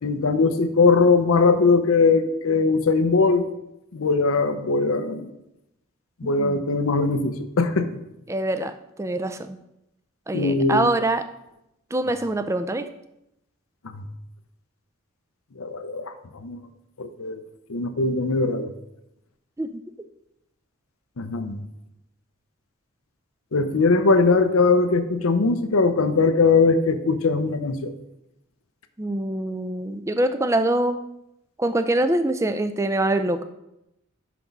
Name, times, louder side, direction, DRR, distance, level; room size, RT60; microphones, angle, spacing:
voice 1, 0.0-3.5 3.9-5.3 6.2-7.9 10.3-10.9 13.9-14.0 15.6-16.6 17.0-17.4 17.7-18.7 21.2-21.6 23.5-27.9, left 4 dB, 85° left, 9 dB, 0.6 m, -20 dB
voice 2, 6.2-6.6 8.3-8.7 9.0-9.6 10.3-11.2 11.9-12.9 19.6-19.8 29.0-31.0 31.6-33.4, right 1 dB, 15° right, 10 dB, 0.3 m, -24 dB
6.0 x 5.9 x 5.2 m, 0.86 s
head